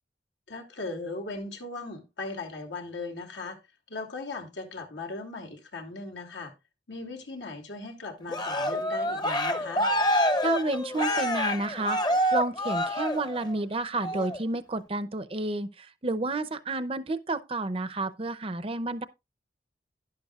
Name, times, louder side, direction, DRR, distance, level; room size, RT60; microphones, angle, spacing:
voice 1, 0.5-3.6 3.9-6.5 6.9-9.9, left 3 dB, 85° left, 2.6 m, -38 dB
Cheering, 8.3-13.5 14.0-14.4, equal, 25° left, 0.9 m, -27 dB
voice 2, 10.4-12.0 12.3-19.0, right 2 dB, 30° right, 0.6 m, -30 dB
11.5 x 11.0 x 2.4 m
head